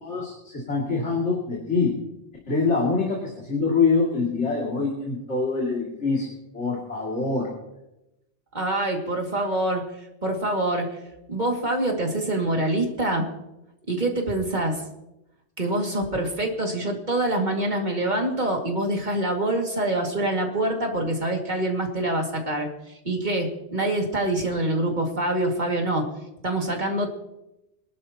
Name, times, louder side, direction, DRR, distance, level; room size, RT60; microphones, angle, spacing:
voice 1, 0.0-1.9 2.5-6.3 6.5-7.5, left 4 dB, 80° left, -3 dB, 2.9 m, -25 dB
voice 2, 8.5-11.0 11.3-13.3 13.9-14.8 15.6-26.1 26.4-27.1, right 1 dB, 40° right, 1 dB, 2.4 m, -25 dB
24.0 x 12.0 x 2.9 m, 0.91 s
omnidirectional pair, 1.2 m